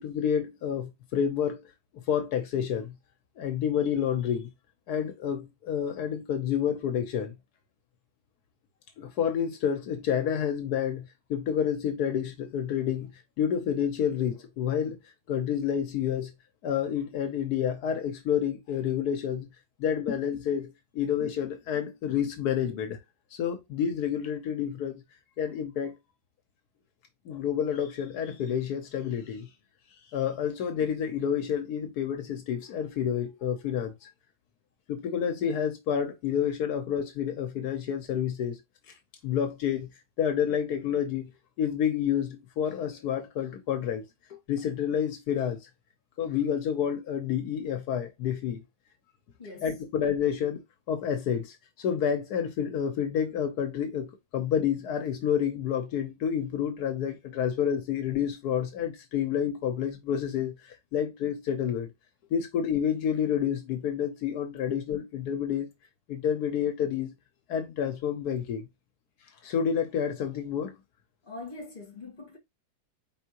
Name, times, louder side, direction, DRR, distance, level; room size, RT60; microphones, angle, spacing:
voice 1, 0.0-1.6 2.1-2.9 3.4-4.5 4.9-7.3 9.0-11.0 11.3-13.1 13.4-15.0 15.3-16.3 16.6-19.5 19.8-23.0 23.3-25.0 25.4-26.0 27.3-29.5 30.1-34.1 34.9-38.6 39.2-39.9 40.2-41.3 41.6-44.0 44.3-45.6 46.2-48.6 49.6-50.6 50.9-60.6 60.9-61.9 62.3-65.7 66.1-67.1 67.5-68.6 69.4-70.7, left 8 dB, 80° left, 1.3 m, -29 dB
voice 2, 49.4-49.7 71.2-72.4, left 3 dB, 35° left, 1.8 m, -42 dB
4.6 x 3.9 x 2.8 m
omnidirectional pair, 1.6 m